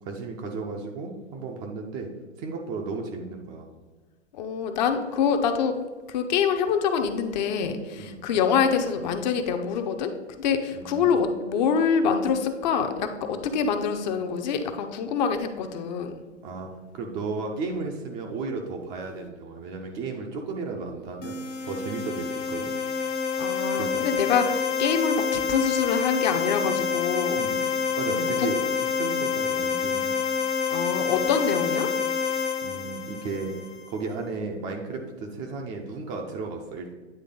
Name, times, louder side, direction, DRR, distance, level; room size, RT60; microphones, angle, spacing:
voice 1, 0.0-2.1 2.4-3.7 8.0-8.2 10.7-11.2 16.4-21.4 21.6-22.7 23.7-24.1 27.4-27.7 28.0-28.6 29.0-30.2 32.6-33.5 33.9-36.9, right 4 dB, 20° right, 2 dB, 0.4 m, -34 dB
voice 2, 4.3-5.8 6.1-10.1 10.4-16.2 23.4-27.4 28.1-28.5 29.1-29.2 30.7-31.9, left 6 dB, 40° left, 6 dB, 0.6 m, -25 dB
sound 1, 21.2-33.9, left 6 dB, 85° left, 1.1 m, -27 dB
9.4 x 3.2 x 3.8 m, 1.3 s
hypercardioid pair, 115°, 36 cm